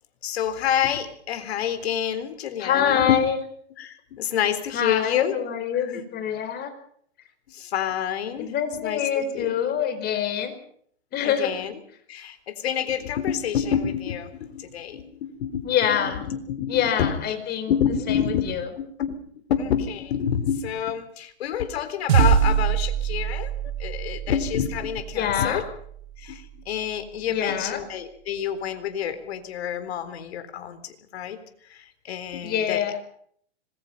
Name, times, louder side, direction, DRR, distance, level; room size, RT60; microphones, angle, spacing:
voice 1, 0.2-3.2 3.8-5.4 7.5-9.5 11.2-11.7 12.1-15.7 16.3-17.1 17.7-19.2 19.5-23.5 23.8-25.6 26.2-31.4 31.7-32.8, left 9 dB, 65° left, 10 dB, 4.0 m, -28 dB
voice 2, 2.6-3.4 4.7-6.7 8.4-10.5 11.1-11.6 15.6-16.3 16.7-18.7 25.1-25.6 27.3-27.9 32.4-33.0, left 8 dB, 30° left, 8 dB, 4.8 m, -25 dB
sound 1, 22.1-26.7, right 9 dB, 65° right, 5.5 m, -25 dB
26.0 x 21.0 x 5.5 m, 0.63 s
hypercardioid pair, 125°, 34 cm